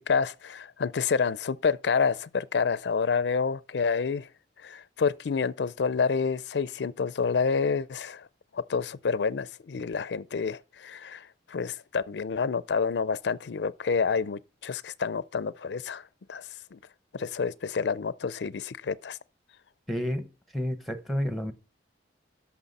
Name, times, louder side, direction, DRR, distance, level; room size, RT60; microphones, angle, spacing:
voice 1, 0.0-4.3 4.6-8.3 8.5-16.0 16.3-16.8 17.1-19.2, left 5 dB, 75° left, 0.4 m, -28 dB
voice 2, 19.9-20.3 20.5-21.5, equal, ahead, 1.0 m, -30 dB
13.0 x 5.9 x 4.1 m
head